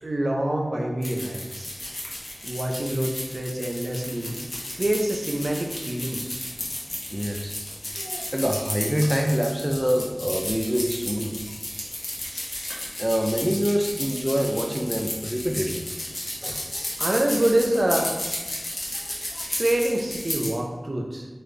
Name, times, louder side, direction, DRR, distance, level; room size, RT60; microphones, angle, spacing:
voice 1, 0.0-1.8 2.4-4.3 4.8-6.2 17.0-18.1 19.6-21.3, right 1 dB, 70° right, 1 dB, 0.6 m, -26 dB
sound 1, 1.0-20.5, left 1 dB, 70° left, 1.1 m, -33 dB
voice 2, 7.1-7.6 7.9-11.4 13.0-15.8 16.4-16.9 18.9-19.5, equal, 10° right, 3 dB, 0.4 m, -26 dB
4.2 x 3.2 x 3.3 m, 1.2 s
wide cardioid pair, 50°, 0 cm